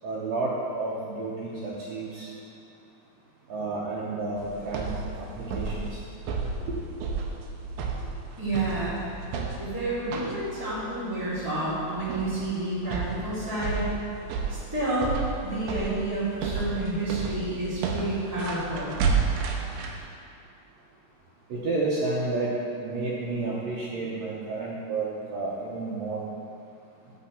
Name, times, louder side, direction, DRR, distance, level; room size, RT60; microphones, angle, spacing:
voice 1, 0.0-2.3 3.5-4.9 5.2-6.0 6.8-6.9 21.5-26.2, right 3 dB, 70° right, -6 dB, 1.9 m, -31 dB
sound 1, 4.4-20.0, right 5 dB, 85° right, 2.2 m, -32 dB
voice 2, 8.4-9.0 9.6-13.9 14.5-15.1 15.4-18.9, right 2 dB, 10° right, -11 dB, 1.2 m, -30 dB
8.5 x 4.2 x 6.9 m, 2.6 s
omnidirectional pair, 3.6 m